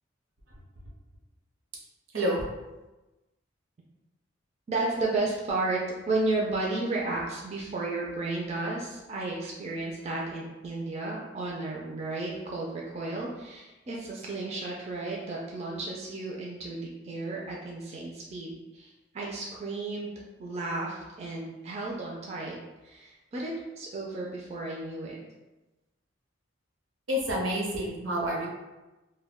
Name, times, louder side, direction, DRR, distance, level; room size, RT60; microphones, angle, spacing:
voice 1, 4.7-5.8 6.1-22.6 22.8-25.2, right 2 dB, 35° right, -3 dB, 0.3 m, -33 dB
voice 2, 27.1-28.5, equal, 75° right, -2 dB, 0.7 m, -28 dB
2.2 x 2.2 x 3.4 m, 1.1 s
head